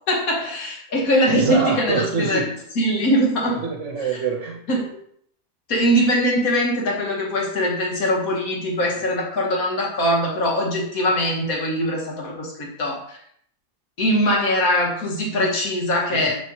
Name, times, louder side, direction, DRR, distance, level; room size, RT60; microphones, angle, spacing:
voice 1, 0.1-2.4 2.8-3.6 4.1-4.2 4.7-5.0 5.7-13.2 14.0-16.4, equal, 70° left, -1 dB, 2.0 m, -22 dB
voice 2, 1.3-2.6 3.5-4.6 16.1-16.4, right 5 dB, 60° right, 1 dB, 1.0 m, -25 dB
6.9 x 6.2 x 3.1 m, 0.66 s
omnidirectional pair, 1.5 m